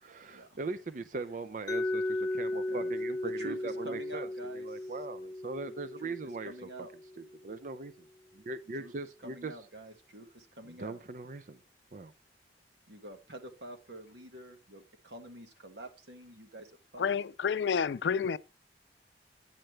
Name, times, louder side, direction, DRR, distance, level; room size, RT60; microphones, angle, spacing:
voice 1, 0.0-4.3 4.5-6.7 7.2-7.9 8.3-9.5 10.8-11.6 11.9-12.1, right 3 dB, 45° right, 0.5 m, -40 dB
Mallet percussion, 1.7-7.5, left 1 dB, 20° left, 0.4 m, -36 dB
voice 2, 3.2-4.9 6.0-6.1 6.5-6.9 8.8-8.9 9.2-11.0 12.9-17.0, right 1 dB, 75° right, 1.5 m, -47 dB
voice 3, 17.0-18.4, left 6 dB, 85° left, 0.4 m, -29 dB
8.9 x 7.7 x 3.3 m
head